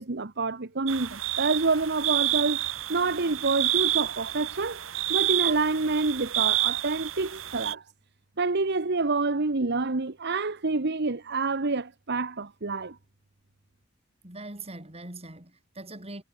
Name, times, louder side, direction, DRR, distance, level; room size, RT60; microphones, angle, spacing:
voice 1, 0.0-2.6 2.9-4.8 5.1-7.8 8.4-13.0, right 3 dB, 55° right, 1.2 m, -27 dB
sound 1, 0.9-7.7, right 15 dB, 75° right, 2.3 m, -29 dB
voice 2, 14.2-16.2, right 2 dB, 30° right, 6.1 m, -42 dB
head